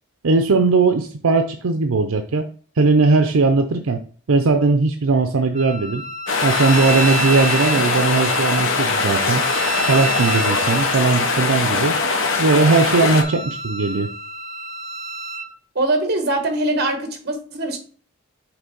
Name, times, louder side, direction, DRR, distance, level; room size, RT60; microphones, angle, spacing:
voice 1, 0.2-2.5 2.8-4.0 4.3-6.0 6.4-9.4 9.9-12.0 12.4-14.1, right 3 dB, 75° right, 7 dB, 0.6 m, -18 dB
Wind instrument woodwind instrument, 5.5-15.5, right 3 dB, 35° right, 0.6 m, -31 dB
sound 1, 6.3-13.2, left 4 dB, 65° left, 1.0 m, -21 dB
voice 2, 15.7-17.8, right 2 dB, 50° right, 5 dB, 1.3 m, -22 dB
5.9 x 3.5 x 5.3 m, 0.43 s
head